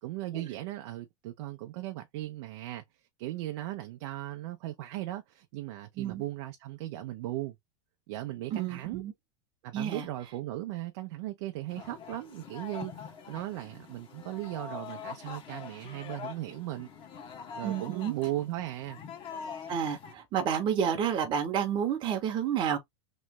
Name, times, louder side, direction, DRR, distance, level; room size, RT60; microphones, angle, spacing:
voice 1, 0.0-2.8 3.2-7.6 8.1-9.0 9.6-16.9 17.5-19.0, right 15 dB, 65° right, 0.5 m, -37 dB
voice 2, 8.5-9.1 9.7-10.1 17.6-18.1 19.7-22.8, right 8 dB, 30° right, 0.9 m, -30 dB
sound 1, 11.7-20.1, left 6 dB, 35° left, 1.0 m, -44 dB
3.1 x 2.1 x 3.5 m
supercardioid pair, 135°, 16 cm